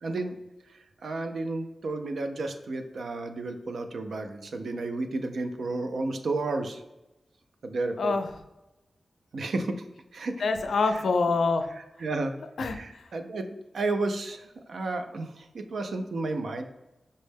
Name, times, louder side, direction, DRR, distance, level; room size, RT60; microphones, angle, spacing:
voice 1, 0.0-0.4 0.7-6.8 7.6-8.2 9.3-9.9 10.1-10.4 10.9-11.0 12.0-12.3 12.7-13.5 13.7-16.6, right 2 dB, 75° right, 6 dB, 0.4 m, -32 dB
voice 2, 8.0-8.3 10.4-11.7 12.6-13.1, left 3 dB, 85° left, 7 dB, 0.4 m, -26 dB
5.2 x 2.1 x 3.3 m, 0.95 s
wide cardioid pair, 160°, 0 cm